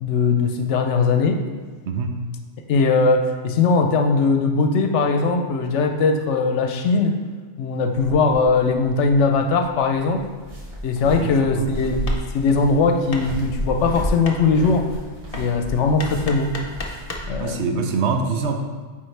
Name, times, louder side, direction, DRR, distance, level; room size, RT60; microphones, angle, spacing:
voice 1, 0.0-1.4 2.7-7.2 7.6-10.2 10.8-12.1 12.3-14.9 15.4-16.5 17.3-17.8, left 4 dB, 75° left, 5 dB, 0.9 m, -20 dB
voice 2, 1.9-2.2 11.0-11.7 17.4-18.6, right 4 dB, 70° right, 4 dB, 0.9 m, -25 dB
sound 1, 7.9-17.4, equal, 55° right, 1.4 m, -32 dB
Hammer, 12.1-17.4, left 3 dB, 40° left, 0.6 m, -37 dB
8.9 x 3.7 x 3.2 m, 1.5 s
omnidirectional pair, 1.2 m